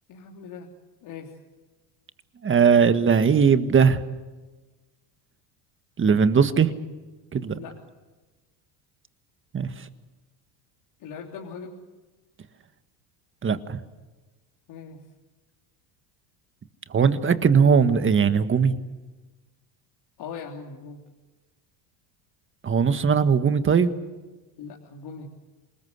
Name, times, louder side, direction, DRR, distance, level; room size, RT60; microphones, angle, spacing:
voice 1, 0.1-0.7 1.0-1.4 7.5-7.8 11.0-11.8 14.7-15.0 20.2-21.0 24.6-25.3, left 5 dB, 55° left, -1 dB, 3.4 m, -40 dB
voice 2, 2.4-4.0 6.0-6.7 7.3-7.6 9.5-9.7 13.4-13.8 16.9-18.7 22.6-23.9, right 6 dB, 25° right, 11 dB, 1.6 m, -19 dB
27.0 x 20.0 x 8.2 m, 1.2 s
supercardioid pair, 110°, 48 cm